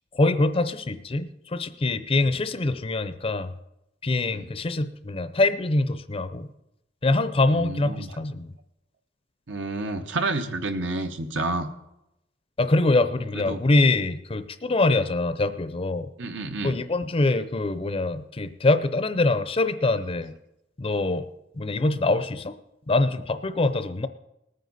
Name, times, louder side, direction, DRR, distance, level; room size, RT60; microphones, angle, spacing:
voice 1, 0.1-3.5 4.0-6.5 7.0-8.5 12.6-16.1 16.6-20.3 20.8-21.3 21.5-22.6 22.9-24.1, left 2 dB, 30° left, 11 dB, 0.6 m, -24 dB
voice 2, 7.5-8.2 9.5-11.7 13.3-13.6 16.2-16.8, right 2 dB, 70° right, 6 dB, 1.1 m, -30 dB
19.5 x 9.2 x 4.1 m, 0.87 s
head